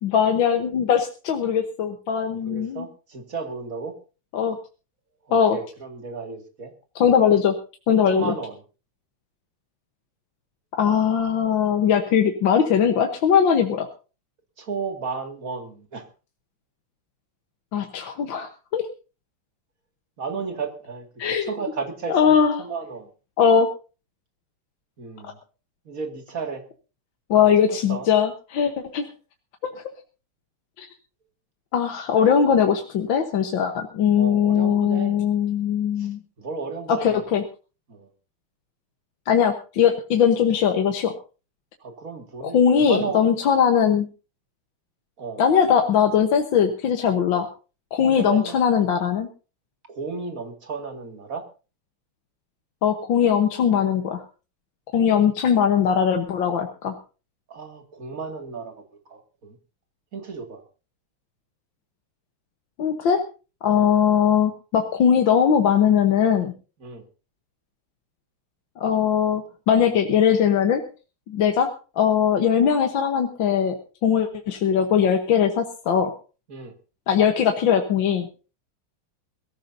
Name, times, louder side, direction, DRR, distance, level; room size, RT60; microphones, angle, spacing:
voice 1, 0.0-2.8 4.3-4.6 5.3-5.6 7.0-7.5 7.9-8.3 10.8-13.9 17.7-18.9 21.2-21.5 22.1-22.6 23.4-23.7 27.3-29.1 29.6-29.8 30.8-30.9 31.7-36.2 36.9-37.4 39.3-41.1 42.4-44.1 45.4-47.5 47.9-49.3 52.8-54.2 54.9-57.0 62.8-63.2 63.6-66.5 68.8-70.8 71.3-71.7 72.0-73.8 74.0-76.1 77.1-78.3, left 8 dB, 65° left, 4 dB, 1.9 m, -20 dB
voice 2, 2.3-3.9 5.3-6.7 8.1-8.6 14.6-16.1 20.2-23.1 25.0-25.4 25.9-26.6 27.4-28.1 34.2-35.2 36.0-36.1 36.4-37.2 37.9-38.1 41.8-43.3 45.2-45.4 48.0-48.6 49.9-51.5 57.5-58.7 59.1-59.6 60.1-60.6 63.7-63.9 66.8-67.0 76.5-76.7, right 5 dB, 40° right, 4 dB, 2.6 m, -33 dB
22.5 x 14.5 x 2.7 m, 0.35 s
omnidirectional pair, 2.4 m